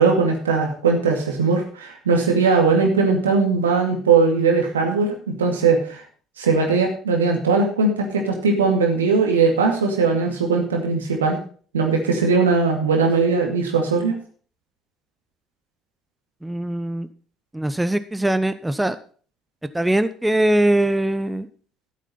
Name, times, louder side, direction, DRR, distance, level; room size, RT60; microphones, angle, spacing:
voice 1, 0.0-6.0 6.4-11.4 11.7-14.2, right 4 dB, 80° right, 2 dB, 2.3 m, -19 dB
voice 2, 16.4-17.1 17.5-19.0 19.7-21.5, right 1 dB, 10° right, 12 dB, 0.8 m, -21 dB
13.0 x 7.5 x 5.5 m, 0.43 s
figure-of-eight pair, 55°, 0 cm